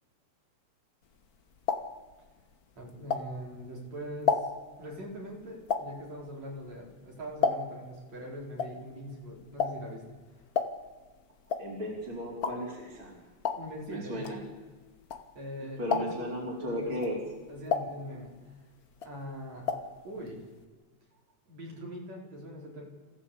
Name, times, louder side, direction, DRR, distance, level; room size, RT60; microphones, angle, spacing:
cork pop, 1.1-3.7 4.0-8.0 8.2-15.5 15.8-16.4 16.9-18.6 18.9-20.0 20.2-20.3 20.6-20.7, left 5 dB, 50° left, 1.1 m, -33 dB
voice 1, 2.8-4.4 4.8-10.0 13.6-14.3 15.4-16.1 16.6-16.9 17.5-18.3 19.0-19.6 20.0-20.4 21.5-22.8, equal, 60° right, -2 dB, 5.5 m, -42 dB
voice 2, 11.6-13.2 13.9-14.4 15.8-17.2, equal, 40° right, -5 dB, 5.0 m, -35 dB
27.5 x 15.5 x 8.4 m, 1.4 s
omnidirectional pair, 3.5 m